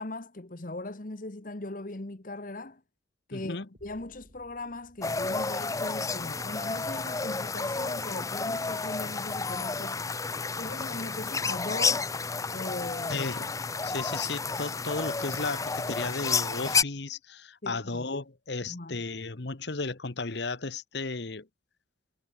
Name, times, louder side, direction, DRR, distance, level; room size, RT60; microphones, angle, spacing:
voice 1, 0.0-2.8 3.3-10.0 10.6-12.1 12.5-13.3 17.6-18.0 18.7-19.0, left 2 dB, 45° left, 1.2 m, -39 dB
voice 2, 3.3-3.7 13.1-13.6 13.8-21.5, left 3 dB, 60° left, 1.2 m, -34 dB
sound 1, 3.7-7.7, equal, 50° right, 6.2 m, -62 dB
sound 2, 5.0-16.8, left 4 dB, 15° left, 0.5 m, -31 dB
head